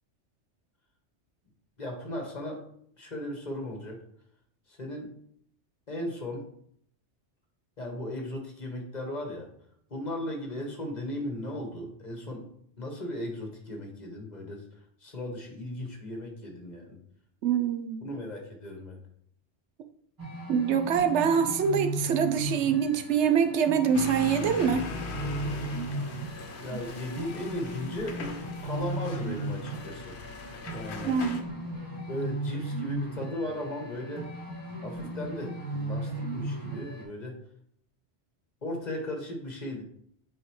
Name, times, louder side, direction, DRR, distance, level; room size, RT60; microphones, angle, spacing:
voice 1, 1.8-2.7 3.0-4.0 4.7-5.1 5.9-6.5 7.8-9.5 9.9-12.5 12.8-17.0 18.0-19.0 26.6-28.2 28.6-30.2 30.7-31.2 32.1-34.4 34.8-37.4 38.6-39.8, left 1 dB, 40° left, 2 dB, 1.4 m, -36 dB
voice 2, 17.4-18.0 20.5-24.9 26.7-26.8 31.0-31.4, right 7 dB, 85° right, 8 dB, 0.9 m, -25 dB
sound 1, 20.2-37.0, right 2 dB, 20° right, 1.5 m, -36 dB
sound 2, 23.9-31.4, left 4 dB, 75° left, 1.0 m, -40 dB
8.9 x 3.7 x 3.1 m, 0.66 s
omnidirectional pair, 1.1 m